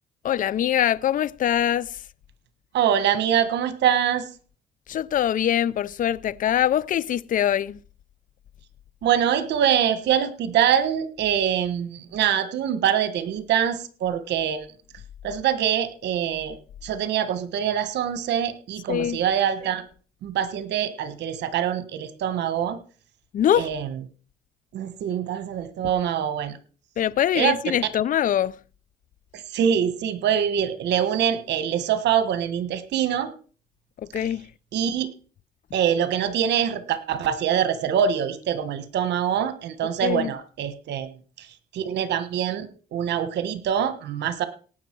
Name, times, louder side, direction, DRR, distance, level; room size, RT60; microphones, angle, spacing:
voice 1, 0.2-2.0 4.9-7.8 18.9-19.2 23.3-23.7 27.0-28.6 34.1-34.5 40.0-40.3, left 10 dB, 50° left, 0.5 m, -23 dB
voice 2, 2.7-4.3 9.0-14.7 15.2-19.8 20.2-22.8 23.5-24.0 24.7-26.6 27.3-27.6 29.3-33.3 34.1-34.2 34.7-35.1 35.7-41.1 41.4-41.5 41.7-44.5, right 9 dB, 75° right, 1.4 m, -24 dB
18.0 x 6.4 x 4.6 m
cardioid pair, 90°, 18 cm